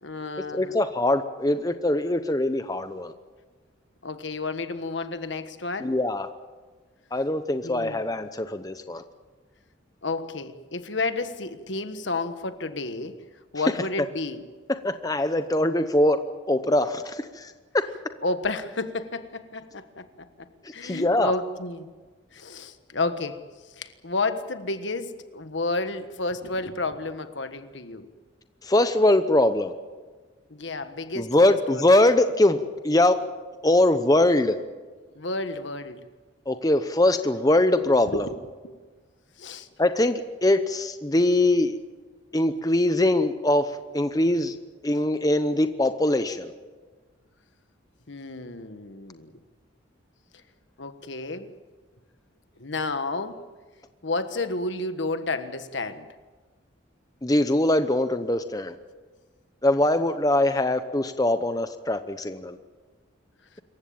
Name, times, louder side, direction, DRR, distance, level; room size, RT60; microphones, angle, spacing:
voice 1, 0.0-0.7 4.0-6.0 7.6-8.0 10.0-13.2 13.5-14.4 18.2-20.3 20.7-21.9 22.3-23.4 23.8-28.1 30.5-31.8 35.1-36.0 38.1-38.4 38.6-38.8 39.4-39.7 48.1-49.3 50.8-51.5 52.6-53.4 54.0-56.1, left 3 dB, 65° left, 10 dB, 1.4 m, -31 dB
voice 2, 0.5-3.1 5.8-6.3 7.1-9.0 14.7-16.2 16.5-17.8 20.8-21.3 28.6-29.7 31.1-33.2 33.6-34.6 36.5-38.3 39.8-41.8 42.3-44.5 44.8-46.5 57.2-58.7 59.6-62.6, left 1 dB, 20° left, 9 dB, 0.8 m, -22 dB
26.5 x 15.0 x 8.7 m, 1.4 s
head